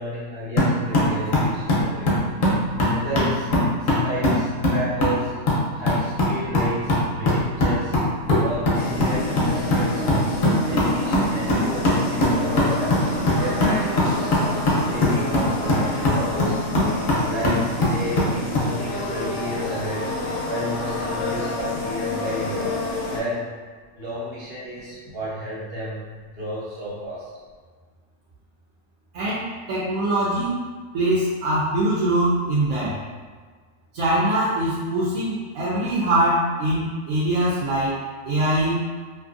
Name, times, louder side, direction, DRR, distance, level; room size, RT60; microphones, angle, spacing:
voice 1, 0.0-2.3 2.9-3.5 3.8-5.3 5.7-8.0 8.3-13.0 13.4-14.4 14.7-16.6 17.2-20.1 20.5-22.7 23.1-23.4 23.9-26.0 26.3-27.2, right 1 dB, 50° right, -8 dB, 1.2 m, -32 dB
sound 1, 0.6-18.7, left 1 dB, 50° left, 0.6 m, -22 dB
sound 2, 8.7-23.2, left 2 dB, 75° left, 1.0 m, -28 dB
voice 2, 29.1-30.6 30.9-33.0 33.9-38.0 38.2-38.8, right 1 dB, 75° right, -7 dB, 1.0 m, -22 dB
2.6 x 2.5 x 2.5 m, 1.5 s
omnidirectional pair, 1.4 m